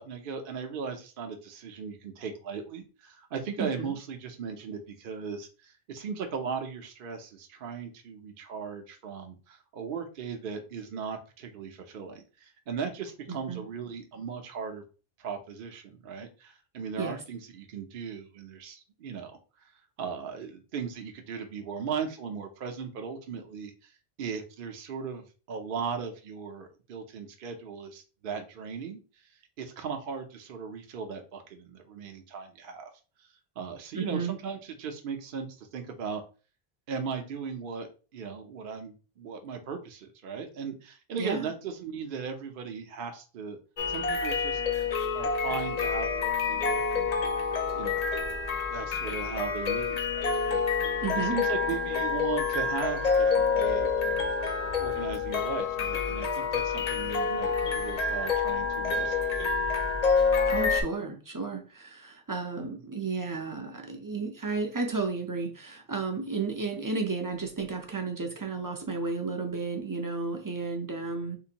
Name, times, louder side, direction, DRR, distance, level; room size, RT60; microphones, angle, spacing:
voice 1, 0.0-14.8 15.2-19.7 20.0-23.9 24.2-29.3 29.6-32.9 33.2-33.3 33.6-36.2 36.9-43.6 43.9-44.6 45.1-47.1 47.8-48.1 48.7-50.6 50.9-54.3 54.8-59.4 62.6-62.7, right 6 dB, 60° right, 0.7 m, -38 dB
voice 2, 3.6-3.9 13.3-13.6 17.0-17.2 33.9-34.3 41.2-41.5 51.0-51.4 60.5-71.4, right 4 dB, 25° right, 0.4 m, -33 dB
sound 1, 43.8-60.8, left 5 dB, 50° left, 0.5 m, -28 dB
3.7 x 2.5 x 2.8 m
omnidirectional pair, 1.0 m